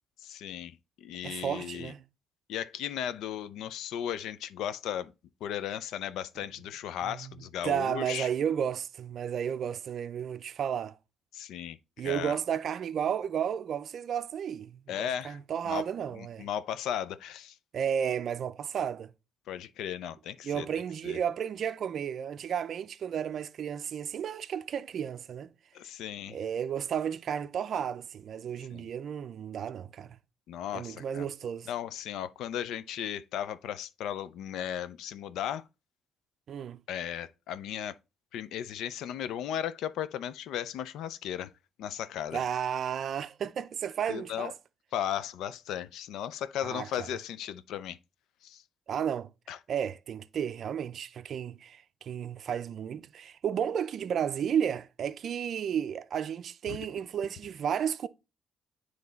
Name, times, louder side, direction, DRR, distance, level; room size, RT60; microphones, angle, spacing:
voice 1, 0.2-1.9 2.5-5.1 5.4-8.3 11.3-12.4 14.9-15.4 15.6-17.5 19.5-20.7 21.0-21.2 25.7-26.4 28.7-28.9 30.5-31.3 31.7-35.6 36.9-37.9 38.3-41.5 41.8-42.4 44.1-44.5 44.9-48.0 48.4-48.6 49.5-49.6 56.7-56.8, left 10 dB, 85° left, 0.5 m, -36 dB
voice 2, 1.2-2.0 7.0-7.3 7.6-10.9 12.0-16.5 17.7-19.1 20.4-25.5 26.3-30.2 30.7-31.7 36.5-36.8 42.3-44.5 46.6-47.1 48.9-49.3 49.7-58.1, right 8 dB, 60° right, 0.4 m, -33 dB
9.3 x 3.2 x 3.9 m
cardioid pair, 90°, 0 cm